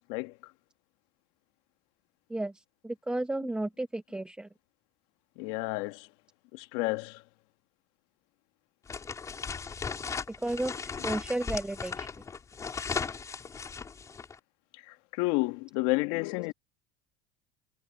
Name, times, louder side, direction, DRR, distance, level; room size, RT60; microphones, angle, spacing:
voice 1, 0.1-0.5 5.4-6.1 6.5-7.2 14.7-16.5, left 23 dB, 75° left, 1.8 m, -31 dB
voice 2, 2.3-4.5 10.4-12.1, right 1 dB, 5° right, 1.2 m, -33 dB
sound 1, 8.9-14.3, left 5 dB, 25° left, 4.9 m, -37 dB
supercardioid pair, 120°, 14 cm